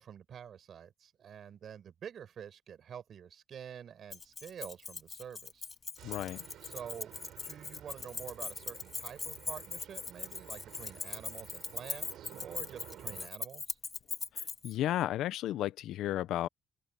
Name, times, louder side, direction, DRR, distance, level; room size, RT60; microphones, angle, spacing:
voice 1, 0.0-5.7 6.6-13.8, right 8 dB, 60° right, 5.2 m, -48 dB
Keys jangling, 4.1-14.7, left 5 dB, 35° left, 1.9 m, -41 dB
voice 2, 6.0-6.4 14.6-16.5, left 13 dB, 85° left, 0.6 m, -33 dB
sound 1, 6.0-13.3, right 11 dB, 80° right, 6.4 m, -52 dB
cardioid pair, 90°, 0 cm